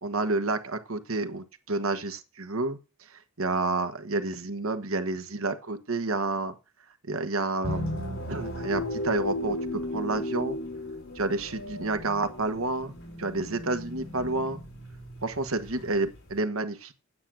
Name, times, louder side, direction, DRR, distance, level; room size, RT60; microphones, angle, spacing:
voice 1, 0.0-6.5 7.1-7.8 8.3-10.6 11.1-12.9 13.2-14.6 15.2-16.9, right 2 dB, 80° right, 7 dB, 1.5 m, -30 dB
sound 1, 7.6-16.4, left 1 dB, 75° left, 4.9 m, -35 dB
9.5 x 7.8 x 6.2 m, 0.31 s
head